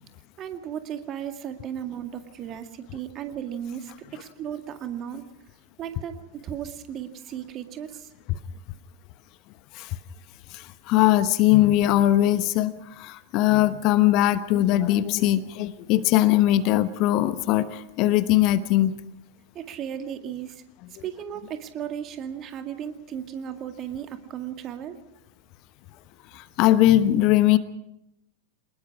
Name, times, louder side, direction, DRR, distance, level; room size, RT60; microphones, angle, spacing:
voice 1, 0.4-5.3 5.8-8.1 19.5-20.6 21.0-25.0, right 9 dB, 30° right, 7 dB, 2.0 m, -35 dB
voice 2, 10.5-18.9 26.3-27.6, left 14 dB, 40° left, 14 dB, 1.0 m, -20 dB
27.5 x 20.0 x 4.9 m, 0.84 s
figure-of-eight pair, 90°, 0 cm